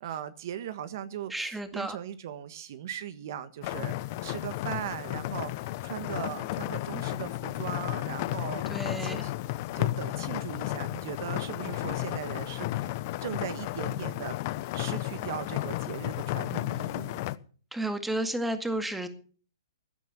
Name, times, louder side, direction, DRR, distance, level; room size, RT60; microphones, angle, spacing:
voice 1, 0.0-8.7 9.0-12.9 13.2-14.4 14.7-17.2, right 10 dB, 55° right, 1.4 m, -39 dB
voice 2, 1.3-2.0 8.7-9.3 17.7-19.1, right 1 dB, 5° right, 2.1 m, -32 dB
sound 1, 3.6-17.4, left 17 dB, 40° left, 1.0 m, -33 dB
16.0 x 10.5 x 7.0 m
hypercardioid pair, 135°, 2 cm